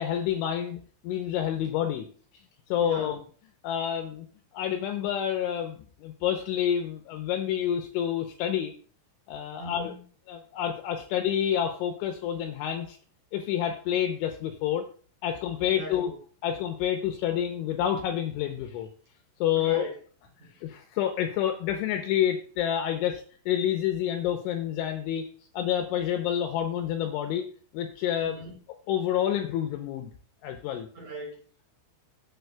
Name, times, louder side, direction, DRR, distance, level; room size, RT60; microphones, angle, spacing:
voice 1, 0.0-2.1 2.7-3.2 3.6-4.3 4.5-8.7 9.3-9.9 10.3-13.0 13.3-14.8 15.2-16.1 16.4-18.9 19.4-19.9 20.6-25.3 25.5-27.5 27.7-28.4 28.9-30.1 30.4-30.9, left 10 dB, 85° left, 5 dB, 2.8 m, -28 dB
voice 2, 2.8-3.1 9.6-10.0 15.6-16.1 19.5-19.9 20.4-20.5 28.2-28.6 30.9-31.6, right 1 dB, 40° right, -2 dB, 4.4 m, -40 dB
14.5 x 6.8 x 2.3 m, 0.43 s
omnidirectional pair, 5.9 m